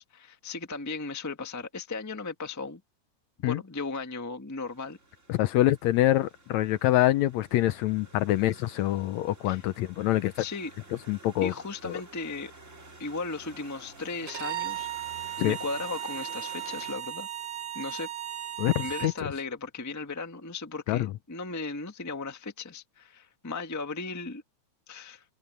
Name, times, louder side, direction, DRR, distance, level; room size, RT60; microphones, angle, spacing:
voice 1, 0.0-2.8 3.5-5.0 9.4-9.6 10.4-10.7 11.4-12.5 13.0-14.9 15.4-17.3 17.7-18.1 18.8-24.4 24.9-25.2, left 3 dB, 15° left, 0.6 m, -36 dB
sound 1, 4.7-16.9, right 2 dB, 25° right, 3.2 m, -51 dB
voice 2, 5.3-10.4 11.1-11.5 11.8-12.0 15.4-15.6 18.6-19.1 20.9-21.1, left 15 dB, 75° left, 1.8 m, -25 dB
Bowed string instrument, 14.3-19.2, right 12 dB, 85° right, 3.3 m, -36 dB
omnidirectional pair, 3.5 m